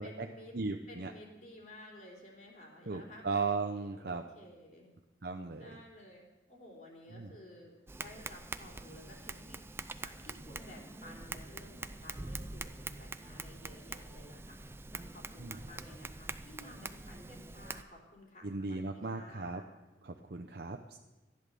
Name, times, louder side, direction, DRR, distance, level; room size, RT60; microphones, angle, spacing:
voice 1, 0.0-0.6 0.9-3.4 3.8-4.9 5.6-9.6 10.0-19.7, left 1 dB, 45° left, -2 dB, 3.4 m, -54 dB
voice 2, 0.5-1.1 2.9-4.2 5.2-5.8 7.1-7.3 15.4-15.5 18.4-19.6 20.0-21.0, right 4 dB, 55° right, 4 dB, 0.7 m, -37 dB
Tap, 7.9-17.8, right 3 dB, 15° right, 0.4 m, -45 dB
14.5 x 10.5 x 6.8 m, 1.1 s
head